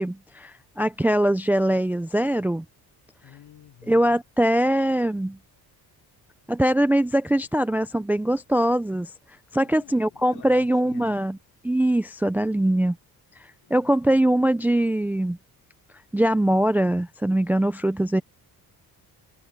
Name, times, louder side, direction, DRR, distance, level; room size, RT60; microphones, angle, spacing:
voice 1, 0.0-2.6 3.9-5.4 6.5-9.1 9.5-11.4 11.6-13.0 13.7-15.4 16.1-18.2, right 1 dB, 5° right, 0.4 m, -22 dB
voice 2, 3.2-4.1 9.6-11.2 13.6-14.1, left 11 dB, 70° left, 4.9 m, -49 dB
cardioid pair, 135°, 39 cm